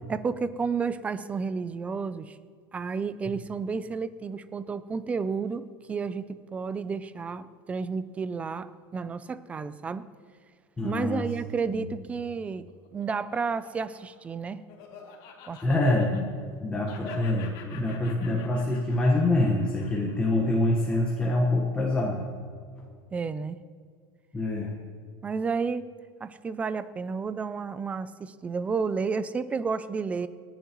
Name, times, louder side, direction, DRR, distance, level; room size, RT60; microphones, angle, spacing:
voice 1, 0.1-2.4 2.7-10.0 10.8-12.7 12.9-14.6 15.5-15.9 23.1-23.6 25.2-25.8 26.2-30.3, right 5 dB, 10° right, 14 dB, 0.3 m, -31 dB
voice 2, 10.8-11.2 11.7-11.9 15.6-16.3 16.6-22.2 24.3-24.7, left 2 dB, 10° left, -2 dB, 1.2 m, -25 dB
Laughter, 12.5-16.6 16.9-21.3, left 7 dB, 55° left, 2.6 m, -50 dB
28.5 x 10.5 x 3.0 m, 2.1 s
cardioid pair, 175°, 11 cm